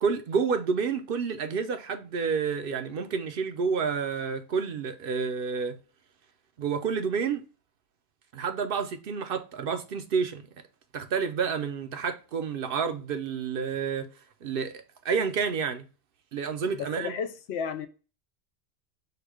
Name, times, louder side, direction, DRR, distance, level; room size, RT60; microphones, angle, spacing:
voice 1, 0.0-5.8 6.6-7.4 8.3-10.5 10.9-14.1 14.4-15.9 16.3-17.1, right 6 dB, 65° right, 0.7 m, -29 dB
voice 2, 16.7-17.9, left 6 dB, 75° left, 0.8 m, -33 dB
4.8 x 2.2 x 4.7 m
omnidirectional pair, 1.1 m